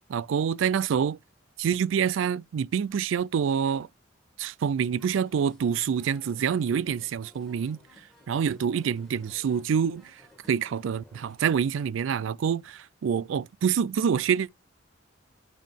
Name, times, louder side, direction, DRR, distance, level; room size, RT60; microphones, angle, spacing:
voice 1, 0.1-1.2 1.6-3.9 4.4-7.8 8.3-10.2 10.5-14.5, right 7 dB, 75° right, 0.3 m, -26 dB
sound 1, 4.9-11.6, left 1 dB, ahead, 2.1 m, -57 dB
9.2 x 3.7 x 3.4 m
head